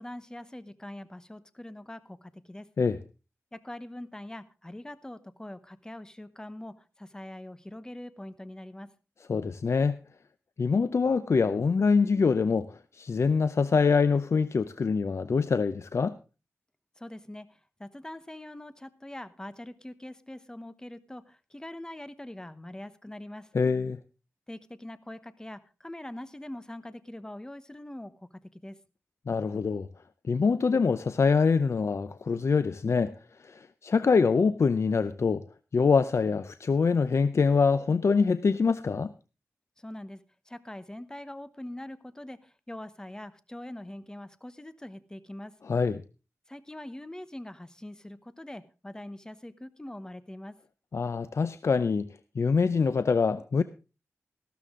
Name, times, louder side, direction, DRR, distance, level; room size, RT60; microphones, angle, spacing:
voice 1, 0.0-2.7 3.5-8.9 17.0-23.5 24.5-28.8 39.8-45.5 46.5-50.6, left 1 dB, 15° left, 1.0 m, -43 dB
voice 2, 9.3-10.0 10.6-16.2 23.5-24.0 29.3-29.9 30.3-33.1 33.4-35.4 35.7-39.1 45.7-46.0 50.9-53.6, left 5 dB, 60° left, 0.5 m, -25 dB
14.5 x 12.5 x 3.7 m
wide cardioid pair, 75°, 5 cm